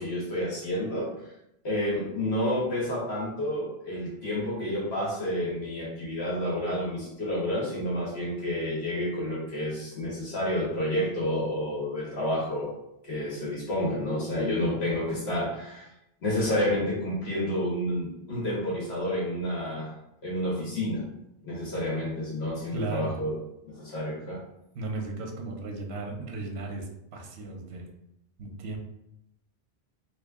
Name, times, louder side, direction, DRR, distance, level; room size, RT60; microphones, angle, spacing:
voice 1, 0.0-1.3 1.6-12.7 13.0-15.9 16.2-19.9 20.2-21.0 21.4-23.4 23.6-24.4, left 1 dB, 85° left, -5 dB, 1.6 m, -30 dB
voice 2, 22.7-23.2 24.7-27.9 28.4-28.8, right 3 dB, 80° right, 2 dB, 0.9 m, -35 dB
3.2 x 2.9 x 3.4 m, 0.83 s
omnidirectional pair, 1.0 m